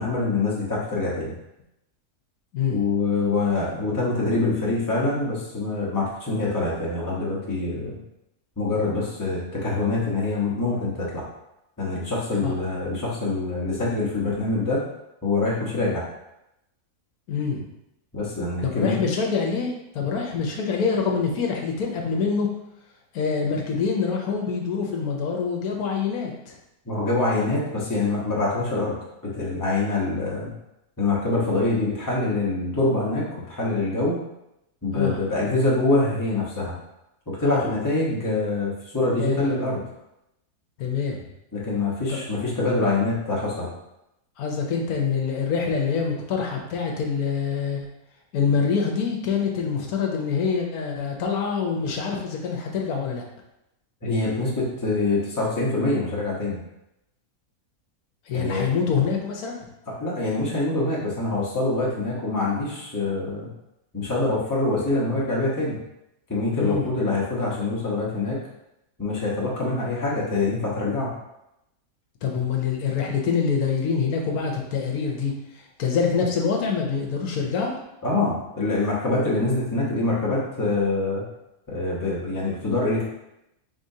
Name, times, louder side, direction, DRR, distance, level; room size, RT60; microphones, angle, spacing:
voice 1, 0.0-1.3 2.7-8.0 8.6-11.2 11.8-14.8 15.2-16.0 18.1-19.0 26.8-28.9 29.3-30.5 31.0-34.2 34.8-36.7 37.3-39.8 41.5-43.7 54.0-56.6 58.3-58.6 60.0-63.5 63.9-65.8 66.3-68.4 69.0-71.1 78.0-81.2 81.7-83.1, left 2 dB, 15° left, -6 dB, 0.9 m, -25 dB
voice 2, 17.3-17.6 18.6-22.5 23.1-26.5 34.9-35.2 37.4-37.7 39.2-39.5 40.8-41.2 42.1-42.2 44.4-47.9 48.3-53.2 58.3-59.7 66.6-66.9 72.2-77.8, left 5 dB, 75° left, 0 dB, 1.2 m, -25 dB
5.0 x 3.8 x 2.7 m, 0.86 s
omnidirectional pair, 1.6 m